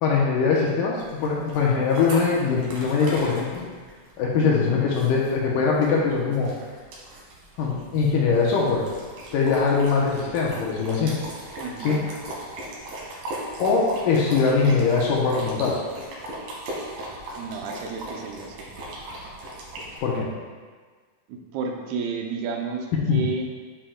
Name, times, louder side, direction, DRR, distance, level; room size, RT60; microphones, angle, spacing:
voice 1, 0.0-3.7 4.2-6.5 7.6-8.8 9.3-11.2 11.8-12.0 13.6-15.8 20.0-20.3 23.1-23.2, left 5 dB, 75° left, -3 dB, 2.2 m, -22 dB
sound 1, 0.9-20.0, right 1 dB, 70° right, 3.1 m, -38 dB
voice 2, 11.6-12.0 17.3-18.7 21.3-23.5, right 4 dB, 85° right, 2 dB, 2.7 m, -32 dB
8.5 x 7.7 x 2.3 m, 1.5 s
omnidirectional pair, 4.3 m